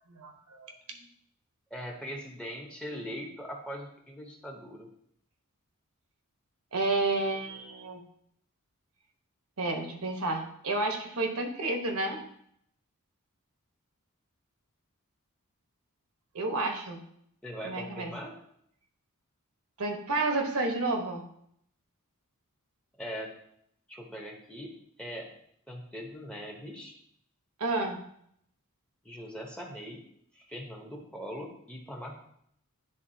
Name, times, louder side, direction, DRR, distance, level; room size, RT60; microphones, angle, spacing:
voice 1, 0.1-0.7 6.7-8.0 9.6-12.2 16.3-17.0 17.6-18.1 19.8-21.2 27.6-28.0, right 2 dB, 75° right, 3 dB, 1.1 m, -30 dB
voice 2, 1.7-4.9 17.4-18.3 23.0-23.3 23.9-24.7 25.0-25.3 25.7-26.9 29.0-30.0 30.3-32.2, equal, 5° left, 0 dB, 0.8 m, -41 dB
10.0 x 3.6 x 2.7 m, 0.69 s
head